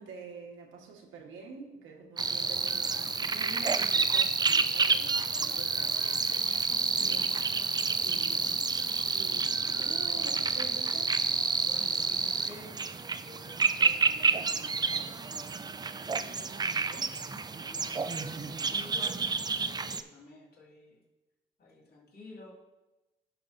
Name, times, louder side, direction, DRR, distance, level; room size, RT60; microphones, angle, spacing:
voice 1, 0.0-6.0 6.9-7.5 7.8-8.6 9.0-11.2 16.3-17.1, right 5 dB, 80° right, 1 dB, 1.5 m, -47 dB
sound 1, 2.2-20.0, right 4 dB, 20° right, 0.4 m, -29 dB
voice 2, 6.7-7.2 9.3-9.4 11.6-12.8 13.2-15.1 17.2-21.0 21.6-22.5, left 2 dB, 50° left, -3 dB, 2.4 m, -51 dB
15.5 x 5.5 x 2.7 m, 1.1 s
cardioid pair, 90°, 20 cm